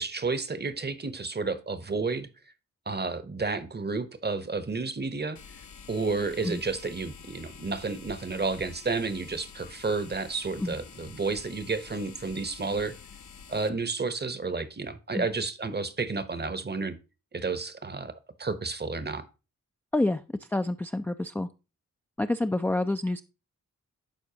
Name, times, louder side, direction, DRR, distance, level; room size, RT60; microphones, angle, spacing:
voice 1, 0.0-2.3 2.9-5.4 5.9-12.9 13.5-17.0 17.3-18.1 18.4-19.2, right 4 dB, 30° right, 0.8 m, -31 dB
sound 1, 5.4-13.7, left 6 dB, 60° left, 0.7 m, -48 dB
voice 2, 19.9-20.2 20.5-21.5 22.2-23.2, left 2 dB, 5° left, 0.3 m, -27 dB
11.5 x 4.2 x 2.8 m
cardioid pair, 45°, 33 cm